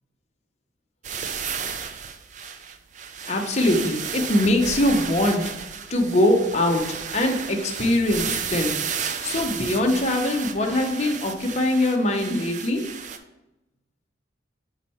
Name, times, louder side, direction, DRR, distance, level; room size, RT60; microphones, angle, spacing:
sound 1, 1.0-13.2, right 7 dB, 40° right, 0.4 m, -33 dB
voice 1, 3.3-5.5 5.9-6.9 7.1-8.8 9.2-12.9, left 1 dB, 35° left, 3 dB, 0.8 m, -22 dB
5.5 x 5.0 x 4.2 m, 0.96 s
head